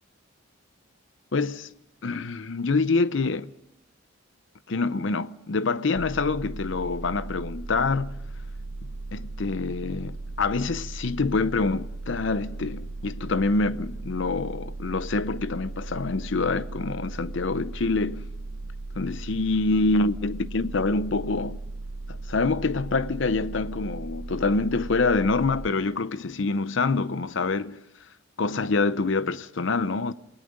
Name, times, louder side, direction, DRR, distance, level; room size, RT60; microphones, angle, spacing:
voice 1, 1.3-1.7 2.0-3.5 4.7-8.2 9.1-18.3 19.0-21.6 22.1-27.8 28.4-30.1, left 3 dB, 60° left, 0.7 m, -26 dB
sound 1, 5.9-25.7, right 2 dB, 85° right, 0.9 m, -37 dB
28.0 x 18.5 x 5.2 m
head